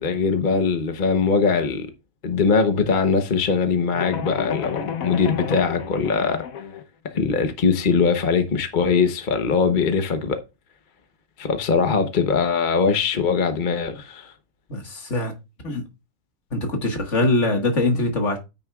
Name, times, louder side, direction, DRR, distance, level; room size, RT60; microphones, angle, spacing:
voice 1, 0.0-1.9 2.2-6.4 7.0-10.4 11.4-14.3, left 5 dB, 40° left, 1.0 m, -21 dB
sound 1, 3.9-6.8, left 7 dB, 90° left, 1.3 m, -31 dB
voice 2, 14.7-15.3 15.6-15.8 16.5-18.4, left 2 dB, 60° left, 2.0 m, -22 dB
9.4 x 8.9 x 2.4 m
omnidirectional pair, 1.4 m